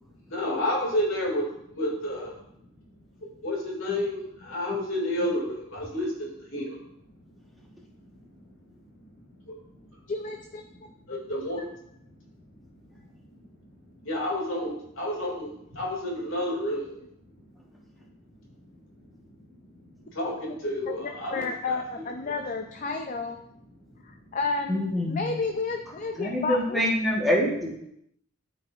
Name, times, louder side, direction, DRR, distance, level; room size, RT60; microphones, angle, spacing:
voice 1, 0.3-1.5 1.7-2.4 3.2-6.8 7.6-7.7 8.1-8.2 9.4-10.0 11.1-11.8 13.0-13.4 13.9-17.0 18.6-18.7 19.3-19.4 19.9-21.8 22.3-22.4, left 1 dB, 70° left, -2 dB, 2.3 m, -31 dB
voice 2, 10.1-10.9 20.9-23.4 24.0-24.8 25.1-26.9, left 4 dB, 35° left, 4 dB, 0.4 m, -31 dB
voice 3, 24.7-25.2 26.2-27.7, left 1 dB, ahead, -4 dB, 1.2 m, -25 dB
12.5 x 4.7 x 2.5 m, 0.77 s
head